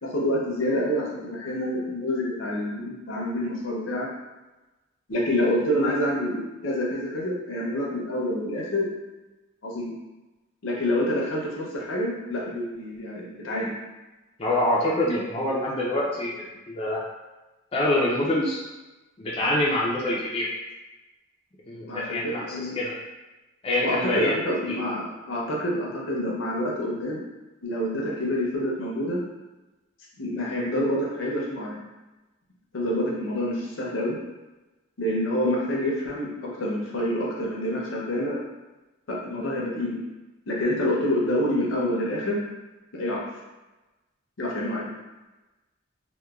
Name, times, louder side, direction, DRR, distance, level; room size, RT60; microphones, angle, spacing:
voice 1, 0.0-4.1 5.1-8.9 9.6-9.9 10.6-13.7 21.9-22.8 23.8-27.2 27.6-29.2 30.2-31.8 32.7-34.2 35.0-38.4 39.1-40.0 40.5-42.4 42.9-43.2 44.4-44.9, left 1 dB, 75° left, -3 dB, 0.6 m, -27 dB
voice 2, 14.4-17.0 17.7-18.6 19.2-20.5 21.7-22.9 23.6-24.4 24.7-24.8, left 1 dB, 30° left, -5 dB, 0.3 m, -25 dB
2.9 x 2.1 x 2.3 m, 1.1 s
head